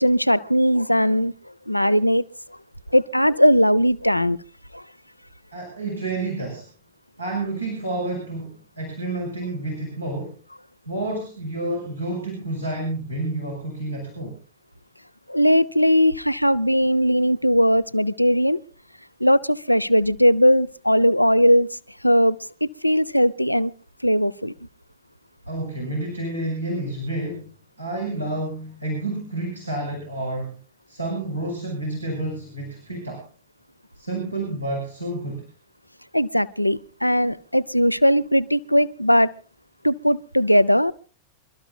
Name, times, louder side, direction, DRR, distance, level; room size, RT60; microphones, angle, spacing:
voice 1, 0.0-1.3 1.7-2.2 2.9-4.4 15.3-18.6 19.2-21.7 22.0-22.4 22.6-23.7 24.0-24.5 36.1-39.3 39.8-40.9, equal, 90° left, 0.6 m, -19 dB
voice 2, 5.5-6.7 7.2-10.3 10.9-14.4 25.5-27.5 27.8-30.6 30.9-33.3 33.9-35.4, right 2 dB, 85° right, 6.4 m, -29 dB
28.0 x 13.5 x 2.3 m
figure-of-eight pair, 90°, 0 cm